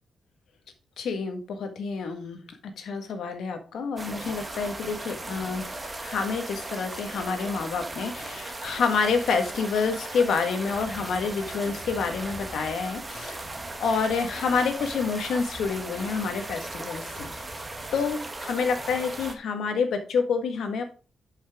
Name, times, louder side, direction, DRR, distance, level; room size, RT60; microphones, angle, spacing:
voice 1, 1.0-2.4 2.8-13.4 13.8-17.3 17.9-20.8, left 5 dB, 75° left, 6 dB, 1.6 m, -28 dB
sound 1, 4.0-19.3, right 2 dB, 15° right, 1.1 m, -37 dB
11.5 x 5.7 x 3.6 m, 0.37 s
wide cardioid pair, 175°, 0 cm